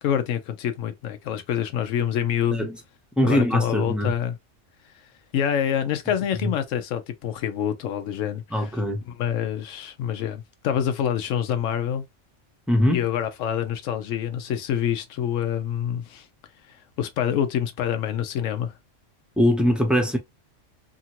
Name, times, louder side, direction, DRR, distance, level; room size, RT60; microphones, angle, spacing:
voice 1, 0.0-2.7 3.2-4.4 5.3-8.7 9.1-12.1 12.9-16.3 16.7-18.7, left 9 dB, 90° left, 1.0 m, -26 dB
voice 2, 3.2-4.1 8.5-9.0 12.7-13.0 19.4-20.2, left 1 dB, ahead, 0.4 m, -21 dB
2.9 x 2.5 x 2.8 m
omnidirectional pair, 1.3 m